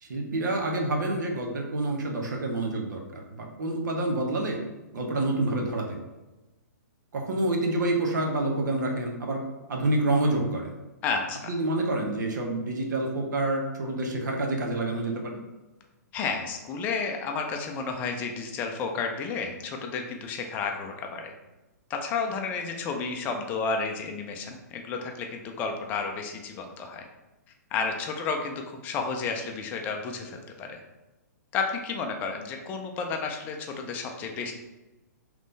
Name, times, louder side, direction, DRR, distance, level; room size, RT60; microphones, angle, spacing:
voice 1, 0.0-4.6 4.9-6.0 7.1-9.4 9.7-10.7 11.5-15.4, right 2 dB, 80° right, 1 dB, 1.0 m, -28 dB
voice 2, 11.0-11.6 16.1-21.3 21.9-27.1 27.7-30.8 31.5-34.5, left 4 dB, 15° left, 3 dB, 0.4 m, -31 dB
3.6 x 3.1 x 3.9 m, 1.1 s
hypercardioid pair, 160°, 10 cm